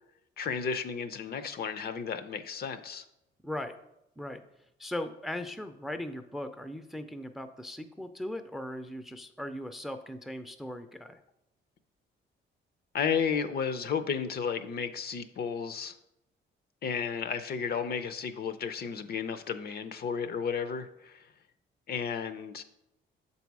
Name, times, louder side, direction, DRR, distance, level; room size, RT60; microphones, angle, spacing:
voice 1, 0.4-3.0 12.9-16.0 16.8-21.3 21.9-22.6, left 6 dB, 50° left, 11 dB, 0.6 m, -33 dB
voice 2, 3.4-3.8 4.2-4.4 4.8-11.2, left 1 dB, ahead, 9 dB, 0.5 m, -38 dB
6.7 x 4.1 x 4.7 m, 0.86 s
cardioid pair, 90°, 20 cm